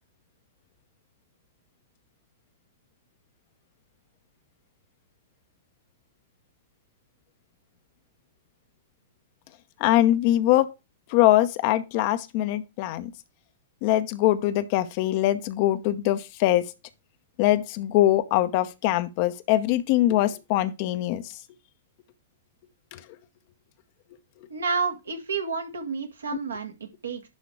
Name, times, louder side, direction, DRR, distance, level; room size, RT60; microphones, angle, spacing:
voice 1, 9.8-10.7 11.1-13.1 13.8-16.6 17.4-21.2 22.9-23.0, left 14 dB, 40° left, 0.8 m, -22 dB
voice 2, 24.5-27.3, right 5 dB, 70° right, 1.6 m, -30 dB
10.5 x 4.0 x 4.7 m
figure-of-eight pair, 105°, 0 cm